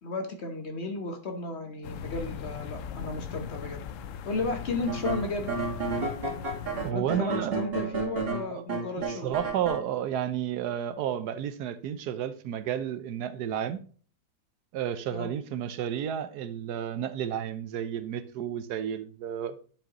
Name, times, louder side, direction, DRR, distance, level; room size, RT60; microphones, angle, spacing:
voice 1, 0.0-3.8 4.2-5.5 6.9-9.4 15.1-15.3, left 3 dB, 45° left, 1.2 m, -34 dB
sound 1, 1.8-6.9, left 8 dB, 70° left, 0.8 m, -39 dB
sound 2, 4.9-9.8, right 4 dB, 35° right, 1.8 m, -31 dB
voice 2, 6.8-7.6 8.5-8.6 9.1-13.8 14.7-19.6, right 9 dB, 80° right, 1.2 m, -31 dB
10.5 x 5.1 x 2.9 m
omnidirectional pair, 1.7 m